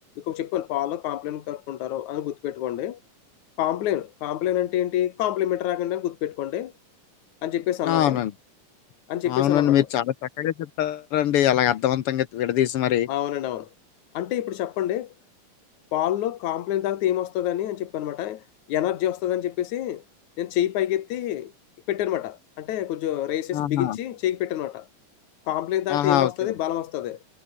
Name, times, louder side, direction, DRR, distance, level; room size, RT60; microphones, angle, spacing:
voice 1, 0.2-3.0 3.6-6.7 7.4-8.2 9.1-9.9 13.1-13.7 14.1-15.1 15.9-20.0 20.4-21.5 21.9-24.9 25.5-27.2, left 12 dB, 65° left, 2.8 m, -27 dB
voice 2, 7.8-8.3 9.3-13.1 23.5-24.0 25.9-26.5, left 12 dB, 90° left, 1.2 m, -23 dB
omnidirectional pair, 4.0 m